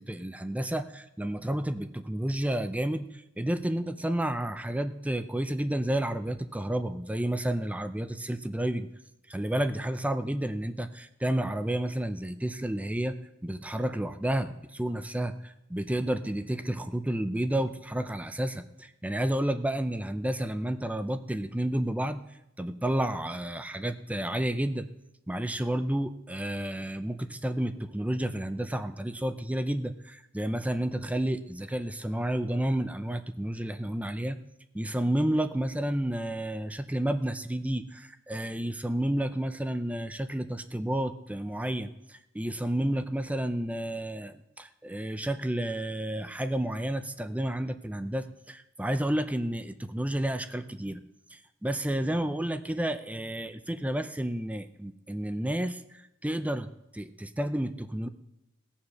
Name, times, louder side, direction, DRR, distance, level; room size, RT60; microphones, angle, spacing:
voice 1, 0.0-8.9 9.3-13.2 13.4-22.2 22.6-24.9 25.3-34.4 34.7-51.0 51.3-56.7 56.9-58.1, right 1 dB, 5° right, 10 dB, 0.5 m, -31 dB
18.0 x 7.2 x 6.4 m, 0.89 s
head